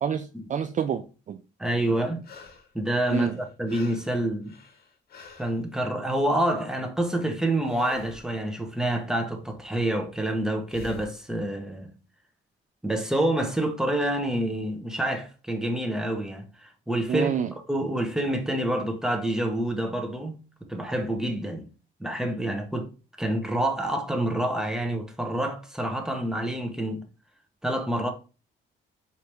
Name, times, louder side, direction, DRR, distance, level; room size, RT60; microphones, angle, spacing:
voice 1, 0.0-1.4 3.1-3.4 17.1-17.5, right 8 dB, 40° right, 0.4 m, -28 dB
voice 2, 1.6-2.2 2.7-4.5 5.4-11.9 12.8-17.3 17.7-20.4 20.7-21.7 22.0-22.9 23.2-27.0 27.6-28.1, right 1 dB, 5° right, 0.9 m, -27 dB
sound 1, 1.8-2.7 3.0-5.6 7.6-8.3 10.7-11.2 14.1-14.2, left 4 dB, 50° left, 1.1 m, -46 dB
4.5 x 2.8 x 3.4 m
cardioid pair, 90°, 20 cm